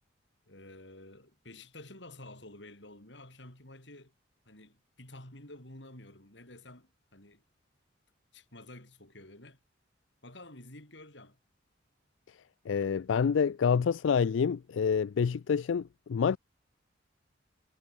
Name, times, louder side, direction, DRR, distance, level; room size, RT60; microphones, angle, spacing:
voice 1, 0.4-4.1 4.4-7.4 8.3-9.6 10.2-11.4, left 1 dB, 65° left, 6.8 m, -50 dB
voice 2, 12.7-16.4, left 6 dB, 85° left, 0.4 m, -27 dB
head